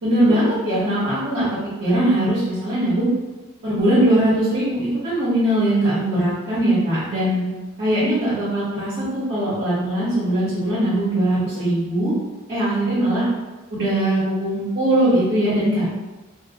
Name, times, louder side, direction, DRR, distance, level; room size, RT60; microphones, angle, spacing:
voice 1, 0.0-3.1 3.6-7.5 7.8-12.1 12.5-13.3 13.7-15.9, right 1 dB, 60° right, -13 dB, 1.0 m, -20 dB
2.6 x 2.1 x 2.8 m, 1.2 s
head